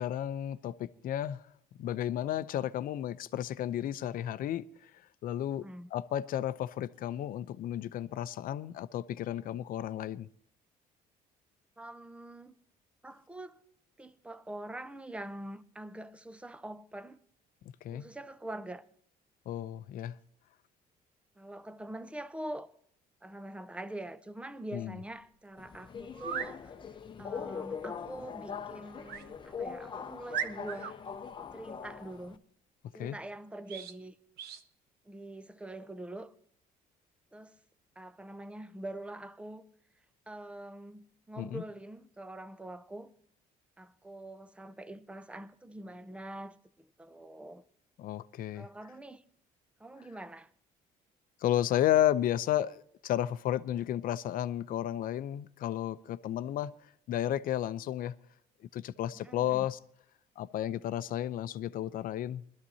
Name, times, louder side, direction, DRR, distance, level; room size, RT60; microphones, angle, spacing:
voice 1, 0.0-1.4 1.8-4.6 5.2-5.6 5.9-10.3 17.8-18.1 19.5-20.1 24.7-25.0 32.9-33.2 41.4-41.6 48.0-48.7 51.4-56.7 57.1-58.1 58.7-59.8 60.4-62.5, left 12 dB, 60° left, 0.6 m, -32 dB
voice 2, 5.6-5.9 11.8-12.5 13.0-13.6 14.0-17.2 17.9-18.8 21.4-22.7 23.2-26.7 27.2-31.0 31.5-32.4 32.9-34.1 35.1-36.3 37.3-37.6 38.0-39.7 40.3-43.1 43.8-47.6 48.5-49.2 49.8-50.5 59.1-59.7, right 1 dB, 5° right, 0.7 m, -44 dB
sound 1, 25.2-25.3 26.1-26.5 29.1-29.3 29.8-29.9 30.3-30.9 33.7-34.0 34.4-34.6, right 8 dB, 75° right, 1.0 m, -37 dB
Subway metro underground, 25.6-32.4, left 6 dB, 30° left, 0.8 m, -42 dB
21.0 x 13.0 x 2.8 m
cardioid pair, 125°, 16 cm